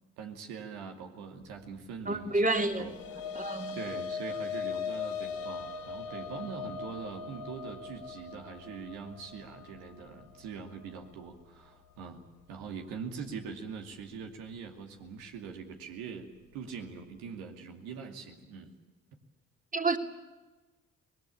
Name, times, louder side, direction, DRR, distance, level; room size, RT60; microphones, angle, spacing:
voice 1, 0.2-2.9 3.7-12.2 12.5-18.8, right 6 dB, 75° right, 3 dB, 2.6 m, -43 dB
voice 2, 2.1-2.9 3.3-3.7 19.7-20.0, right 2 dB, 20° right, 5 dB, 2.8 m, -29 dB
sound 1, 2.5-11.0, left 5 dB, 80° left, 4.0 m, -39 dB
24.5 x 21.0 x 8.6 m, 1.2 s
hypercardioid pair, 45°, 38 cm